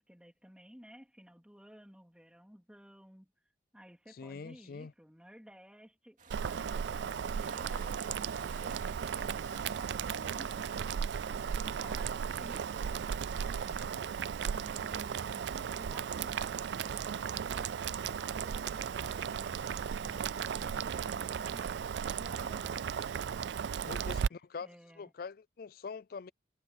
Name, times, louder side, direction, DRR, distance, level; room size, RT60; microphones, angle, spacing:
voice 1, 0.1-3.3 3.7-8.1 14.5-19.7 20.0-22.9 24.6-25.1, equal, 5° right, 3.4 m, -55 dB
voice 2, 4.2-4.9 23.8-24.7 25.0-26.3, left 5 dB, 50° left, 0.4 m, -44 dB
sound 1, 6.2-13.7, right 5 dB, 40° right, 2.7 m, -55 dB
Boiling, 6.3-24.3, right 7 dB, 60° right, 0.3 m, -36 dB
head